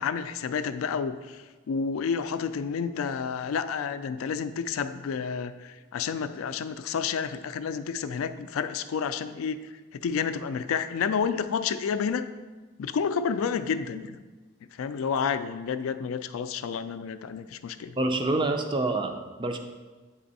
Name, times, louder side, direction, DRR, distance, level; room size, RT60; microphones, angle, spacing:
voice 1, 0.0-12.3 12.8-14.2 14.7-18.0, left 6 dB, 85° left, 11 dB, 0.3 m, -30 dB
voice 2, 18.0-19.6, right 2 dB, 25° right, 6 dB, 0.4 m, -27 dB
8.4 x 3.4 x 4.0 m, 1.3 s
head